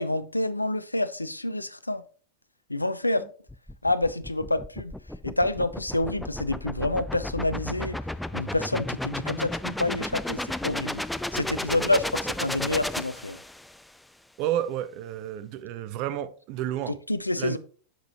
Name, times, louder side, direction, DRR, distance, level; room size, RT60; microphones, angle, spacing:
voice 1, 0.0-2.0 2.7-3.3 3.8-4.9 5.2-8.0 8.3-11.0 11.3-13.4 16.9-17.6, left 2 dB, 85° left, 0.5 m, -28 dB
sound 1, 3.5-13.8, left 1 dB, 5° left, 0.3 m, -33 dB
voice 2, 14.4-17.0 17.4-17.6, right 11 dB, 45° right, 0.6 m, -31 dB
8.0 x 6.0 x 3.0 m
figure-of-eight pair, 90°, 0 cm